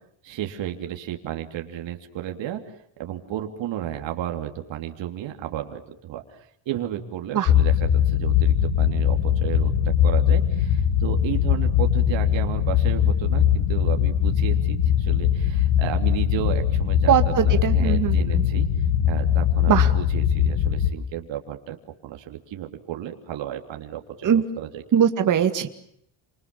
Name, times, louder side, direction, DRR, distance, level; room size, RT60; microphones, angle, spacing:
voice 1, 0.2-2.6 3.0-6.4 6.6-18.7 19.0-21.8 22.0-24.8, right 11 dB, 60° right, 4 dB, 3.4 m, -33 dB
sound 1, 7.5-20.9, left 9 dB, 90° left, 2.8 m, -21 dB
voice 2, 17.1-18.5 19.7-19.9 24.2-24.4 24.9-25.7, right 9 dB, 40° right, 8 dB, 2.1 m, -21 dB
29.5 x 27.5 x 7.2 m, 0.70 s
cardioid pair, 180°, 50 cm